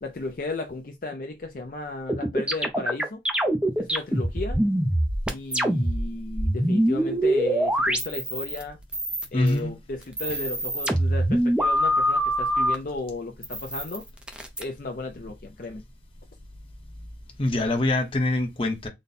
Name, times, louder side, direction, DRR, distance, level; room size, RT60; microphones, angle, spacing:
voice 1, 0.0-3.2 3.8-4.6 5.3-8.8 9.3-14.0 14.6-15.8, left 2 dB, 50° left, 0.5 m, -34 dB
sound 1, 2.1-6.0 6.3-8.6 8.9-9.6 10.0-12.8 13.4-14.6, right 1 dB, 5° right, 0.5 m, -24 dB
voice 2, 9.3-9.7 17.4-18.9, left 2 dB, 30° left, 0.8 m, -24 dB
4.0 x 2.1 x 4.0 m
head